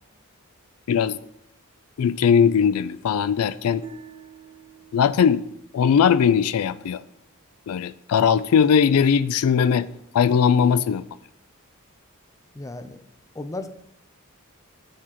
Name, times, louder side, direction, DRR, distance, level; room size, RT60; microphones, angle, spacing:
voice 1, 0.9-1.2 2.0-3.9 4.9-5.4 5.7-7.0 7.7-9.9 10.1-11.1, left 7 dB, 85° left, 0.4 m, -19 dB
sound 1, 3.8-7.0, right 3 dB, 25° right, 0.8 m, -47 dB
voice 2, 12.5-13.0 13.3-13.7, left 2 dB, 15° left, 0.5 m, -34 dB
13.5 x 4.9 x 2.9 m
head